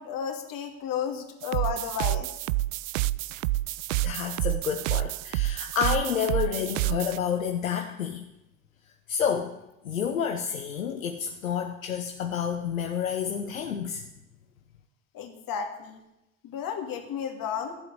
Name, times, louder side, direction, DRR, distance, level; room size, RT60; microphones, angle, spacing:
voice 1, 0.0-2.3 15.1-16.0 16.4-17.8, left 7 dB, 55° left, 4 dB, 2.6 m, -33 dB
sound 1, 1.4-7.2, right 17 dB, 75° right, 0.5 m, -29 dB
voice 2, 4.0-8.3 9.1-9.6 9.8-14.0, left 7 dB, 85° left, 5 dB, 0.8 m, -29 dB
13.5 x 7.7 x 10.0 m, 0.92 s
figure-of-eight pair, 50°, 39 cm